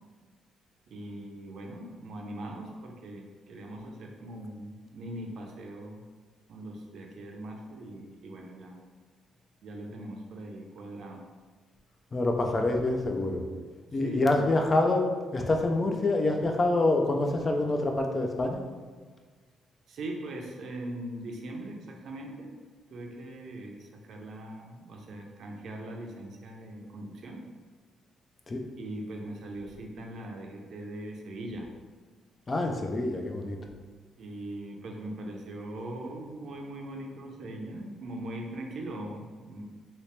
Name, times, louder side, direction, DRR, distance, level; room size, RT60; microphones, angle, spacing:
voice 1, 0.9-6.0 6.5-8.8 9.6-11.3 12.5-12.7 13.9-14.5 19.9-22.6 22.9-27.4 28.8-31.7 34.2-39.6, right 1 dB, 65° right, 2 dB, 0.5 m, -41 dB
voice 2, 12.1-13.4 13.9-15.1 15.3-18.6 28.5-28.6 32.5-33.6, left 2 dB, 30° left, 2 dB, 0.4 m, -26 dB
2.9 x 2.8 x 3.2 m, 1.5 s
cardioid pair, 90°, 0 cm